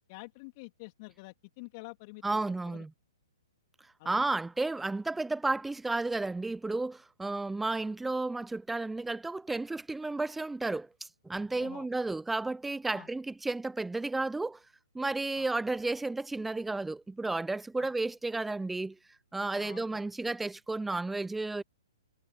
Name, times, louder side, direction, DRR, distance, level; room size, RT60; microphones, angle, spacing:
voice 1, 0.0-2.4 2.6-2.8 4.0-4.3 11.6-11.9 12.9-13.1 15.3-15.5 17.8-17.9 19.6-20.0, left 28 dB, 35° left, 3.4 m, -48 dB
voice 2, 2.2-2.9 4.0-10.9 11.2-14.6 14.9-19.0 19.3-21.6, right 2 dB, 5° right, 0.7 m, -32 dB
figure-of-eight pair, 120°, 3 cm